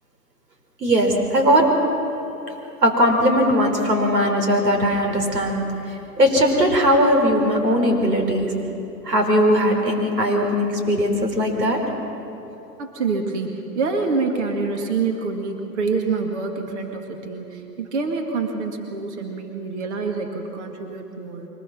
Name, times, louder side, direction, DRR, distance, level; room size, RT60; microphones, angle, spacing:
voice 1, 0.8-1.8 2.8-8.6 9.0-11.9, equal, 80° right, 2 dB, 4.2 m, -19 dB
voice 2, 12.8-21.5, right 4 dB, 45° right, 3 dB, 2.3 m, -26 dB
24.0 x 20.0 x 6.1 m, 3.0 s
hypercardioid pair, 135°, 48 cm